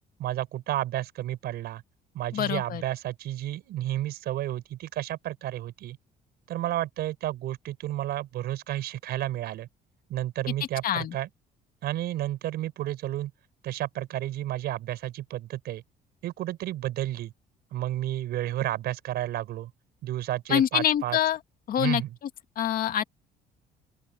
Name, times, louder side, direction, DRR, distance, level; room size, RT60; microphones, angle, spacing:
voice 1, 0.2-1.8 2.1-6.0 6.5-9.7 10.1-11.3 11.8-13.3 13.6-15.8 16.2-17.3 17.7-19.7 20.0-21.2 21.8-22.1, right 13 dB, 75° right, 5.0 m, -31 dB
voice 2, 2.3-2.8 10.8-11.1 20.5-21.4 21.7-22.0 22.6-23.0, left 10 dB, 60° left, 2.1 m, -25 dB
open air
cardioid pair, 110°, 17 cm